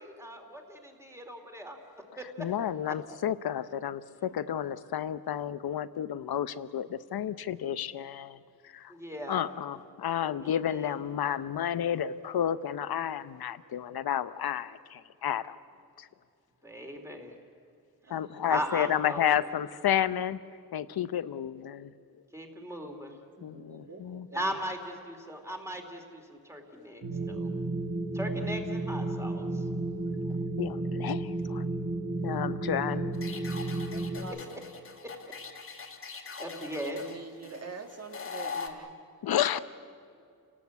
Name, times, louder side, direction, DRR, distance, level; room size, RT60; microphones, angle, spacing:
voice 1, 0.2-1.8 2.2-2.3 8.9-9.5 10.4-10.9 16.6-17.3 18.5-19.3 22.3-23.2 24.3-27.5 28.1-29.6 36.4-37.0, equal, 5° right, 3 dB, 2.6 m, -38 dB
voice 2, 2.4-8.4 8.6-8.9 9.3-15.6 16.0-16.1 18.1-20.4 20.7-21.9 23.4-24.3 27.0-27.1 30.6-31.6 32.2-33.2 39.2-39.6, left 10 dB, 70° left, 14 dB, 0.9 m, -31 dB
voice 3, 18.1-18.7 23.4-24.5 33.9-34.6 36.5-38.9, right 4 dB, 40° right, 5 dB, 2.1 m, -45 dB
sound 1, 27.0-34.2, right 2 dB, 65° right, 2.8 m, -32 dB
sound 2, 33.1-38.7, left 5 dB, 35° left, 2.2 m, -42 dB
30.0 x 19.0 x 8.3 m, 2.4 s
wide cardioid pair, 160°, 38 cm